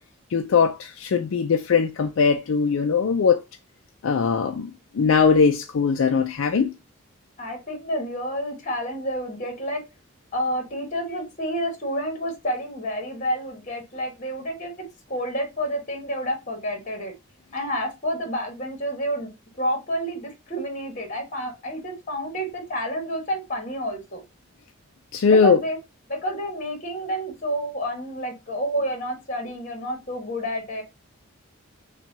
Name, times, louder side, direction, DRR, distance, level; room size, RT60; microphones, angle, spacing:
voice 1, 0.3-3.4 4.0-6.7 25.1-25.6, left 5 dB, 75° left, 0.4 m, -20 dB
voice 2, 7.4-9.8 10.3-17.1 17.5-19.3 19.6-24.2 25.3-25.8 26.1-30.8, equal, 35° left, 1.3 m, -29 dB
5.8 x 2.3 x 2.7 m
head